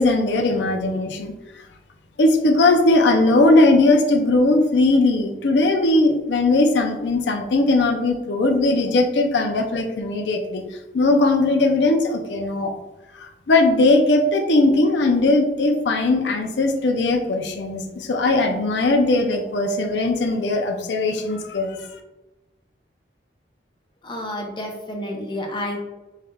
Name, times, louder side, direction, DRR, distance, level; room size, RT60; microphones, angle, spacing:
voice 1, 0.0-1.3 2.2-10.6 10.9-12.7 13.2-21.8, left 2 dB, 90° left, 4 dB, 0.5 m, -19 dB
voice 2, 24.0-25.9, left 1 dB, 25° left, 1 dB, 0.6 m, -30 dB
4.9 x 3.2 x 2.3 m, 1.1 s
head